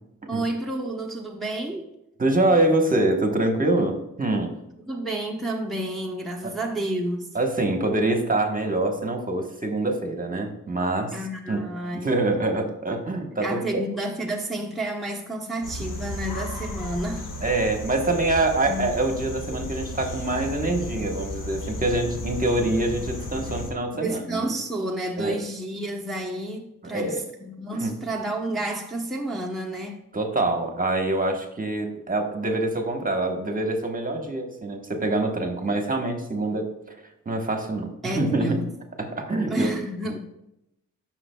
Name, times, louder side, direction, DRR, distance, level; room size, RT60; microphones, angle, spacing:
voice 1, 0.3-1.9 4.8-7.4 11.1-12.1 13.4-17.2 18.7-18.8 23.9-30.0 38.0-38.6 39.5-40.2, right 1 dB, ahead, -2 dB, 0.9 m, -30 dB
voice 2, 2.2-4.5 6.4-6.5 7.3-11.2 11.5-11.7 11.9-13.8 17.4-24.5 25.2-25.4 26.8-27.2 27.7-28.0 30.1-36.9 37.2-38.6 39.0-39.7, right 2 dB, 25° right, 3 dB, 1.2 m, -25 dB
sound 1, 15.6-23.7, left 1 dB, 80° left, 1.5 m, -34 dB
12.5 x 6.1 x 2.3 m, 0.86 s
wide cardioid pair, 100°, 31 cm